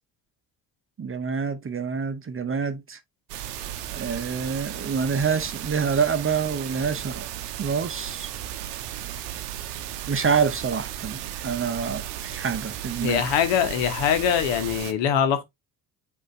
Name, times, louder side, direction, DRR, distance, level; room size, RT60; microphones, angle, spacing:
voice 1, 1.0-3.0 3.9-7.3 7.6-8.3 10.1-13.2, right 6 dB, 25° right, 0.8 m, -27 dB
sound 1, 3.3-14.9, right 12 dB, 80° right, 0.7 m, -35 dB
voice 2, 13.0-15.4, left 9 dB, 70° left, 1.1 m, -23 dB
5.1 x 2.8 x 3.6 m
hypercardioid pair, 50°, 46 cm